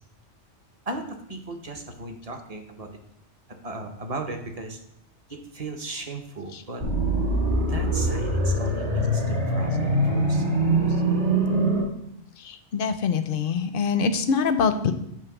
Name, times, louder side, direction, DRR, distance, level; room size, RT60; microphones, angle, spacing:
voice 1, 0.9-2.9 3.6-4.8 5.3-6.8 7.7-10.4, right 2 dB, 35° right, 4 dB, 0.8 m, -36 dB
sound 1, 6.8-11.8, right 1 dB, 75° right, 1.8 m, -23 dB
voice 2, 12.4-14.9, left 5 dB, 60° left, 10 dB, 0.7 m, -24 dB
7.2 x 3.2 x 5.8 m, 0.74 s
omnidirectional pair, 1.2 m